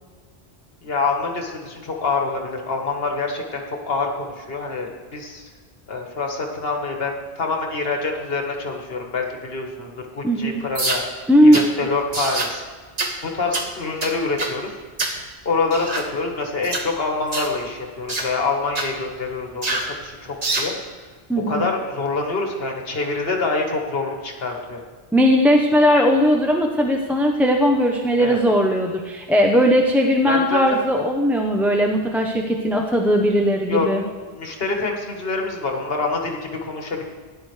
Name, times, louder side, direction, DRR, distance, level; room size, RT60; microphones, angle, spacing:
voice 1, 0.8-5.5 5.9-11.0 11.4-12.6 13.2-14.8 15.5-20.7 21.5-24.8 28.2-28.4 30.3-30.8 33.7-33.9 34.3-37.0, left 3 dB, 65° left, 2 dB, 1.6 m, -26 dB
voice 2, 10.2-10.6 11.3-11.6 21.3-21.6 25.1-34.0, equal, ahead, 2 dB, 0.6 m, -18 dB
sound 1, 10.7-11.1 11.5-11.7 12.1-12.5 13.0-13.2 13.5-13.7 14.0-14.6 15.0-15.2 15.7-16.1 16.6-16.9 17.3-17.5 18.1-18.3 18.7-18.9 19.6-19.9 20.4-20.7, right 2 dB, 40° right, 1.2 m, -25 dB
16.5 x 10.5 x 3.2 m, 1.4 s
omnidirectional pair, 1.1 m